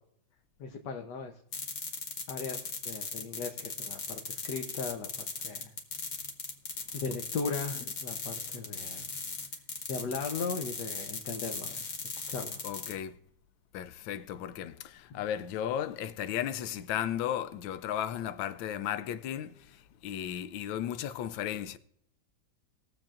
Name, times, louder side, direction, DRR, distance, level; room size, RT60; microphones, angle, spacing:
voice 1, 0.6-1.3 2.3-5.7 6.9-9.1 9.9-11.9 12.3-12.6, left 4 dB, 65° left, 1.4 m, -37 dB
sound 1, 1.5-12.9, left 4 dB, 50° left, 1.5 m, -38 dB
voice 2, 12.6-13.2 13.7-21.8, left 10 dB, 85° left, 1.4 m, -35 dB
20.5 x 7.4 x 2.5 m
omnidirectional pair, 2.1 m